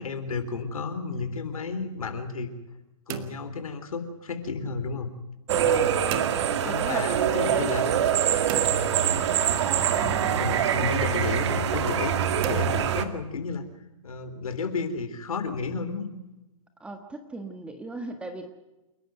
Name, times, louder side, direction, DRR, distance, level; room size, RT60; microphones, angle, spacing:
voice 1, 0.0-2.5 3.1-5.1 5.6-5.9 6.6-7.9 9.9-12.2 12.5-13.7 14.0-16.1, left 4 dB, 85° left, 9 dB, 3.8 m, -32 dB
sound 1, 3.1-4.4 6.1-7.1 8.5-9.7 12.4-13.6, right 9 dB, 25° right, 1.6 m, -39 dB
voice 2, 5.5-5.9 6.6-7.7 9.9-10.6 16.8-18.5, right 2 dB, 5° right, 7 dB, 1.5 m, -38 dB
sound 2, 5.5-13.0, right 8 dB, 55° right, 2.0 m, -24 dB
29.0 x 12.0 x 9.1 m, 1.0 s
hypercardioid pair, 150°, 18 cm